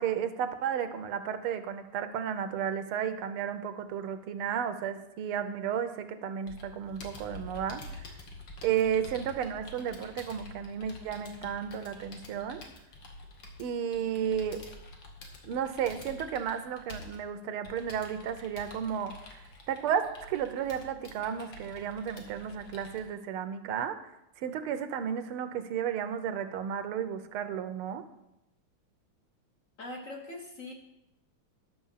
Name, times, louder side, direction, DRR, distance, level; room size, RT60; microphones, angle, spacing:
voice 1, 0.0-7.8 8.6-12.6 13.6-14.6 15.4-19.4 19.7-24.0 24.4-28.0, right 8 dB, 80° right, 10 dB, 1.6 m, -33 dB
Computer keyboard, 6.5-23.0, left 2 dB, 60° left, 2.0 m, -48 dB
voice 2, 29.8-30.7, left 2 dB, 45° left, 1 dB, 1.3 m, -41 dB
10.5 x 6.2 x 5.6 m, 0.86 s
omnidirectional pair, 2.4 m